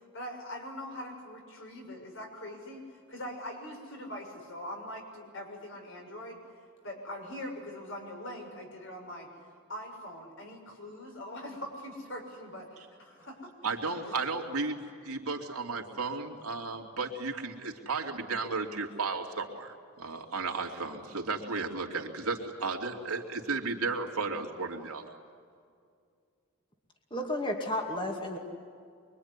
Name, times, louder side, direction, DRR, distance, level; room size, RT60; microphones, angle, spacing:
voice 1, 0.1-6.4 6.8-9.3 9.7-13.5 13.9-14.0, left 1 dB, 60° left, 2 dB, 6.4 m, -42 dB
voice 2, 13.6-25.1, right 4 dB, 90° right, 2 dB, 3.0 m, -34 dB
voice 3, 27.1-28.4, left 1 dB, 20° left, 2 dB, 2.4 m, -32 dB
24.5 x 24.0 x 9.9 m, 2.3 s
head